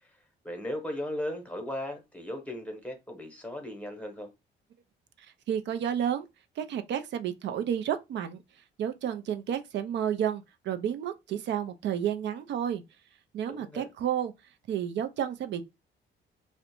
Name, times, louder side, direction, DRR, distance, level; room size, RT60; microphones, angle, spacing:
voice 1, 0.4-4.3 13.5-13.9, left 1 dB, 5° left, 0.9 m, -37 dB
voice 2, 5.5-6.3 6.6-8.4 8.8-12.8 13.3-14.3 14.7-15.6, right 9 dB, 65° right, 0.4 m, -31 dB
2.3 x 2.1 x 2.9 m
cardioid pair, 90°, 20 cm